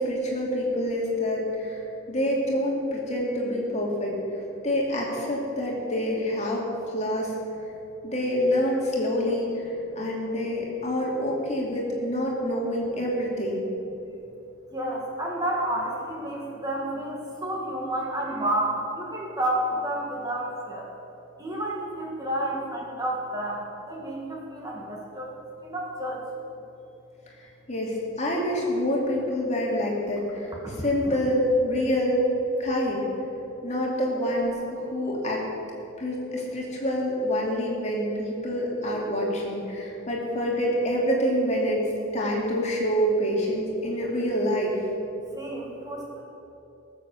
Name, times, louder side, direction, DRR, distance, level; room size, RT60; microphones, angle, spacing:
voice 1, 0.0-1.8 2.1-4.1 4.6-6.7 6.9-7.3 8.0-9.5 10.0-13.6 27.7-30.5 30.8-32.2 32.6-33.0 33.6-35.4 36.0-41.8 42.1-44.7, equal, 35° left, -3 dB, 2.7 m, -26 dB
voice 2, 14.7-20.9 21.4-25.3 25.6-26.2 30.6-30.7 31.0-31.2 45.3-46.2, right 1 dB, 20° right, -3 dB, 1.9 m, -30 dB
19.0 x 7.6 x 7.1 m, 3.0 s
head